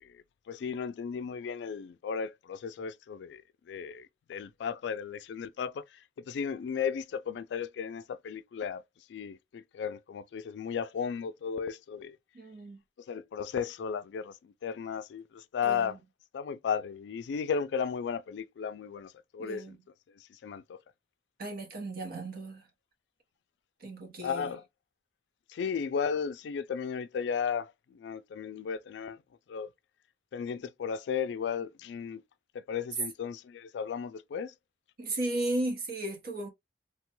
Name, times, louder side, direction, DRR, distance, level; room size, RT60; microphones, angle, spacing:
voice 1, 0.0-3.4 3.7-5.8 6.3-8.8 9.1-12.2 13.1-16.0 16.3-19.8 20.3-20.8 24.2-24.6 25.5-29.2 29.5-29.7 30.3-32.2 32.5-34.5, left 6 dB, 75° left, 0.3 m, -35 dB
voice 2, 12.3-12.8 15.6-16.0 19.4-19.8 21.4-22.7 23.8-24.6 35.0-36.5, right 1 dB, 60° right, 1.0 m, -35 dB
3.2 x 2.2 x 2.9 m
head